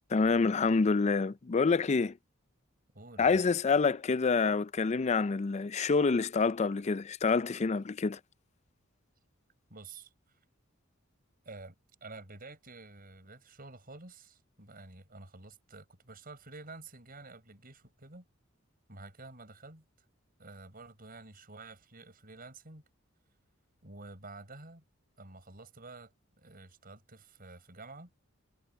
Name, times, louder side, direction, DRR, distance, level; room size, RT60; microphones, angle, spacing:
voice 1, 0.1-2.1 3.2-8.2, left 4 dB, 35° left, 0.4 m, -27 dB
voice 2, 2.9-3.4 9.7-10.1 11.4-11.7 12.0-18.3 18.9-19.8 20.4-22.8 23.8-24.8 25.2-26.1 26.4-28.1, right 3 dB, 45° right, 6.8 m, -50 dB
head